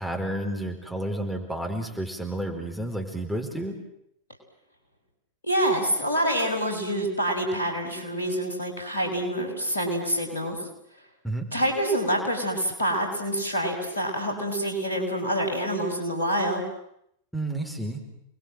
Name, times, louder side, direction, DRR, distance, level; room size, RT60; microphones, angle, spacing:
voice 1, 0.0-3.8 11.2-11.5 17.3-18.0, right 1 dB, ahead, 1 dB, 4.9 m, -31 dB
voice 2, 5.4-10.6 11.5-16.6, equal, 75° left, 3 dB, 6.3 m, -26 dB
30.0 x 21.0 x 7.8 m, 0.74 s
figure-of-eight pair, 90°, 0 cm